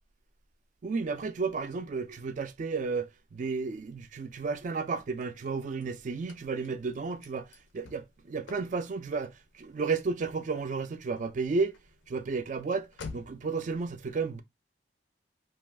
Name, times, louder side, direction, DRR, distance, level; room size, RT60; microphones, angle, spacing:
voice 1, 0.8-11.8 12.1-14.4, right 4 dB, 40° right, 0.3 m, -33 dB
Car / Slam, 4.9-13.5, left 4 dB, 85° left, 0.5 m, -51 dB
2.4 x 2.3 x 3.3 m
head